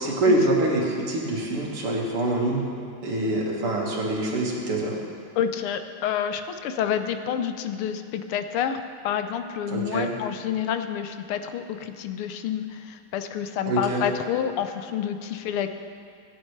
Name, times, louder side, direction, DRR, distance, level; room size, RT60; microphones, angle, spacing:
voice 1, 0.0-2.7 3.0-5.0 9.7-10.1 13.7-14.0, right 1 dB, 80° right, -3 dB, 2.7 m, -25 dB
voice 2, 5.4-15.7, left 9 dB, 80° left, 8 dB, 1.6 m, -28 dB
25.5 x 10.0 x 3.2 m, 2.3 s
omnidirectional pair, 2.4 m